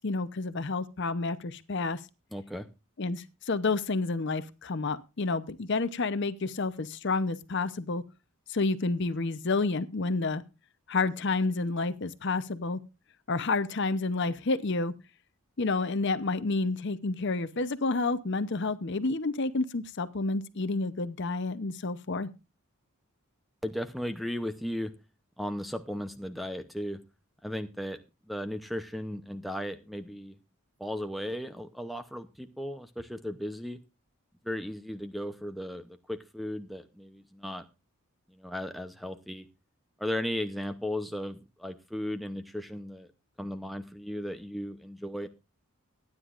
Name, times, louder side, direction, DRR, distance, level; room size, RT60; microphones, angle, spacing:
voice 1, 0.0-2.0 3.0-8.0 8.5-10.4 10.9-12.8 13.3-14.9 15.6-22.3, left 3 dB, 50° left, 13 dB, 0.7 m, -29 dB
voice 2, 2.3-2.7 23.6-24.9 25.4-27.0 27.4-28.0 28.3-30.3 30.8-33.8 34.4-37.6 38.4-39.5 40.0-43.1 43.4-45.3, left 1 dB, ahead, 9 dB, 0.6 m, -36 dB
22.5 x 9.8 x 2.5 m, 0.29 s
head